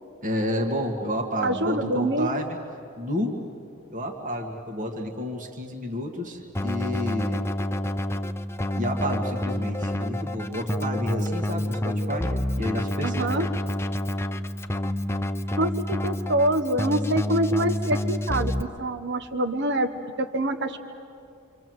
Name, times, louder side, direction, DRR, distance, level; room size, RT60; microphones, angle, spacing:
voice 1, 0.2-2.6 3.0-3.4 3.9-7.4 8.8-13.3, equal, 40° right, 3 dB, 1.9 m, -30 dB
voice 2, 1.4-2.3 13.0-13.5 15.6-19.9 20.2-20.8, right 1 dB, 55° right, 9 dB, 1.2 m, -25 dB
Keyboard (musical), 6.5-18.6, left 1 dB, 10° left, 0.6 m, -28 dB
27.0 x 27.0 x 7.9 m, 2.5 s
head